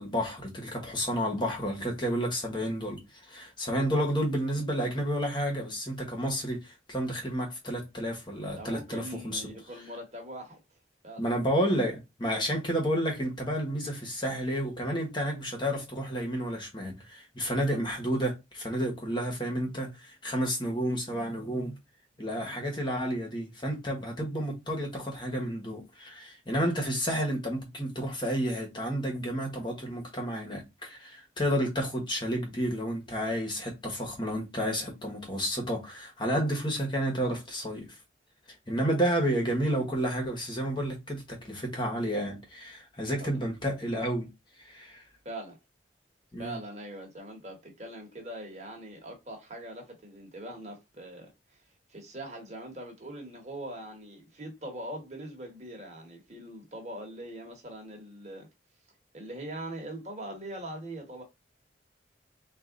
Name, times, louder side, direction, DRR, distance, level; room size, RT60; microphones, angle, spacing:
voice 1, 0.0-9.4 11.2-21.8 22.2-38.0 38.7-44.3 44.6-45.0 46.3-46.6, equal, 25° left, 1.3 m, -31 dB
voice 2, 8.5-10.6 11.0-11.3 43.2-43.3 45.2-45.6 46.4-51.6 51.9-58.5 59.1-61.2, right 1 dB, 35° right, 1.4 m, -42 dB
3.9 x 2.6 x 3.9 m
head